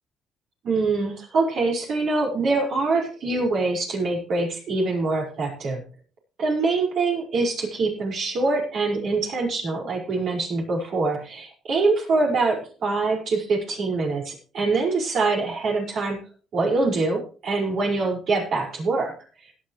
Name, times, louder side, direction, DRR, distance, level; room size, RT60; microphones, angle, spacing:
voice 1, 0.6-5.8 6.4-16.2 16.5-19.1, right 3 dB, 60° right, 0 dB, 5.4 m, -24 dB
16.5 x 11.5 x 3.2 m, 0.37 s
supercardioid pair, 70°, 0 cm